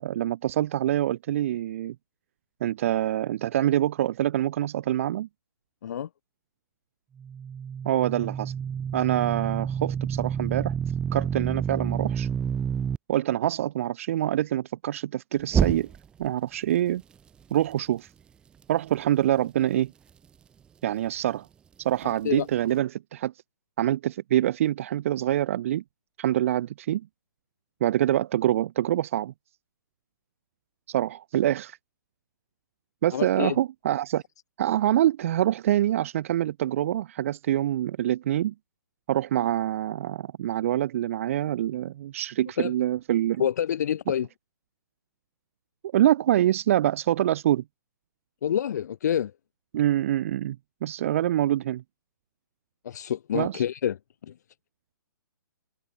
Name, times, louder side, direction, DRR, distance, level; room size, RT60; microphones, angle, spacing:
voice 1, 0.0-1.9 2.6-5.3 7.8-8.5 8.9-10.8 11.1-12.3 13.1-15.9 16.2-17.0 17.5-18.1 18.7-19.9 20.8-21.5 21.8-23.3 23.8-25.8 26.2-27.1 27.8-29.3 30.9-31.8 33.0-34.2 34.6-38.5 39.1-43.4 45.9-47.6 49.7-51.8 53.3-53.6, right 12 dB, 40° right, 0.8 m, -25 dB
sound 1, 7.2-13.0 15.5-16.3, right 7 dB, 10° right, 0.7 m, -28 dB
voice 2, 22.0-22.5 33.1-33.6 42.6-42.7 43.4-44.3 48.4-49.3 52.8-54.3, left 9 dB, 50° left, 3.8 m, -28 dB
hypercardioid pair, 165°, 11 cm